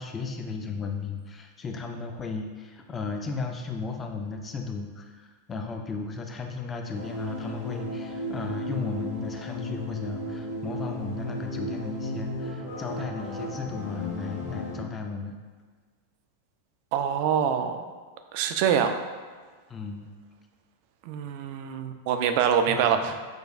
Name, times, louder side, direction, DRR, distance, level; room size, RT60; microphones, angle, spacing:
voice 1, 0.0-15.3 19.7-20.1 22.6-23.2, left 4 dB, 20° left, 3 dB, 0.4 m, -35 dB
sound 1, 6.9-14.8, left 1 dB, 55° left, 0.9 m, -34 dB
voice 2, 16.9-17.8 18.3-19.0 21.1-23.1, right 8 dB, 45° right, 7 dB, 0.3 m, -25 dB
6.2 x 2.3 x 2.5 m, 1.5 s
figure-of-eight pair, 90°, 0 cm